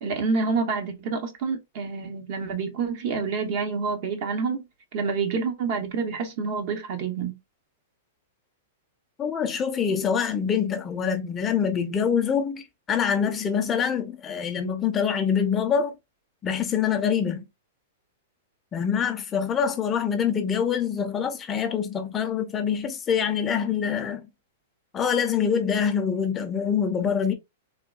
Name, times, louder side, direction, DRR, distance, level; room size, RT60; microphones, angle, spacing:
voice 1, 0.0-4.6 4.9-7.4, right 5 dB, 55° right, 0.7 m, -28 dB
voice 2, 9.2-12.6 12.9-15.9 16.4-17.4 18.7-24.3 24.9-27.3, left 7 dB, 20° left, 0.5 m, -25 dB
3.6 x 2.2 x 2.2 m
hypercardioid pair, 130°, 0 cm